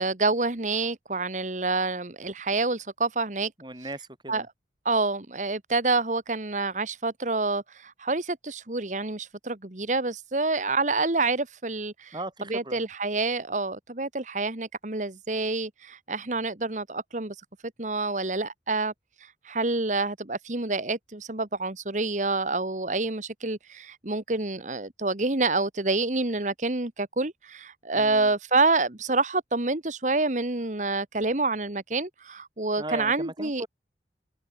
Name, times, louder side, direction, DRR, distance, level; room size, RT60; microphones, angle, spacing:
voice 1, 0.0-3.5 4.3-4.4 4.8-12.2 12.5-17.4 17.8-18.9 19.2-33.6, right 3 dB, 45° right, 1.6 m, -27 dB
voice 2, 3.6-4.5 12.1-12.8 27.9-28.3 32.8-33.7, right 1 dB, 25° right, 5.2 m, -37 dB
head